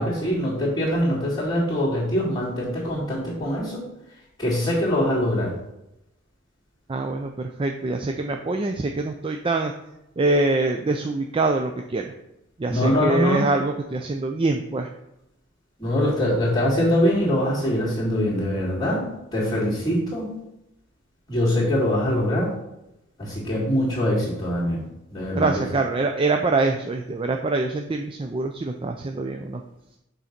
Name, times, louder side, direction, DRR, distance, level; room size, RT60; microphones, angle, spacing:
voice 1, 0.0-3.8 4.4-5.5 12.7-13.4 15.8-20.4 21.3-22.5 23.2-24.8 25.1-25.7, equal, 15° left, -11 dB, 2.1 m, -23 dB
voice 2, 6.9-9.7 10.2-12.1 12.6-14.9 25.4-29.6, right 3 dB, 25° right, 4 dB, 0.4 m, -24 dB
6.4 x 4.0 x 5.8 m, 0.87 s
head